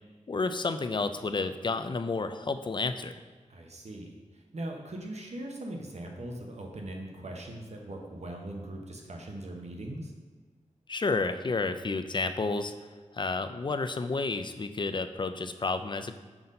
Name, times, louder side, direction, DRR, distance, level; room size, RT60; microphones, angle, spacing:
voice 1, 0.3-3.1 10.9-12.7 13.1-16.2, left 3 dB, 40° left, 10 dB, 0.4 m, -31 dB
voice 2, 3.5-4.1 4.5-10.1, right 1 dB, 60° right, 1 dB, 1.0 m, -40 dB
5.9 x 4.0 x 5.3 m, 1.4 s
wide cardioid pair, 105°, 13 cm